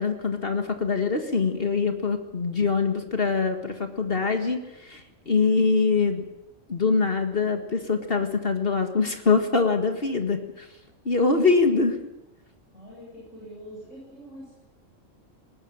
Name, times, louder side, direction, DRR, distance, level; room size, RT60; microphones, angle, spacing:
voice 1, 0.0-6.2 6.7-10.7 11.1-12.0, left 4 dB, 50° left, 6 dB, 1.9 m, -24 dB
voice 2, 12.7-14.6, equal, 70° left, -5 dB, 8.6 m, -44 dB
19.5 x 19.5 x 9.0 m, 0.91 s
omnidirectional pair, 1.3 m